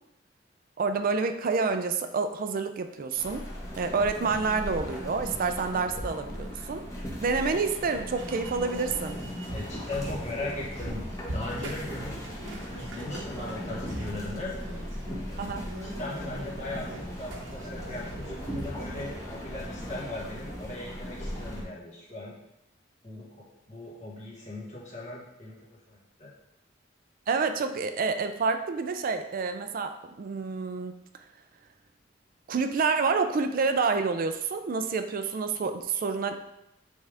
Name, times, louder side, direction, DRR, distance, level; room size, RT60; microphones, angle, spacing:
voice 1, 0.8-3.4 3.8-6.8 7.2-9.2 15.4-15.6 27.3-30.9 32.5-36.4, right 4 dB, 50° right, 8 dB, 0.4 m, -28 dB
sound 1, 3.2-21.6, equal, 20° left, 1.2 m, -38 dB
sound 2, 8.2-19.1, right 1 dB, 80° right, 0.9 m, -41 dB
voice 2, 9.5-12.1 12.8-14.8 15.2-15.5 16.0-22.3 23.0-25.6 25.9-26.3, left 2 dB, 40° left, -5 dB, 1.8 m, -39 dB
8.0 x 3.7 x 3.4 m, 0.85 s
head